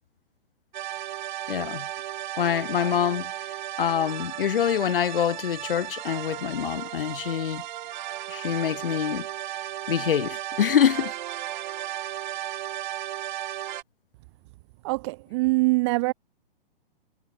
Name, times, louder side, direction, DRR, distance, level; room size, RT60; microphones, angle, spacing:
sound 1, 0.7-13.8, right 13 dB, 55° right, 4.8 m, -35 dB
voice 1, 1.5-1.9 2.4-3.3 3.8-7.6 8.3-9.3 9.9-11.1, left 9 dB, 70° left, 1.4 m, -25 dB
voice 2, 14.8-16.1, right 24 dB, 30° right, 0.6 m, -23 dB
hypercardioid pair, 135°, 29 cm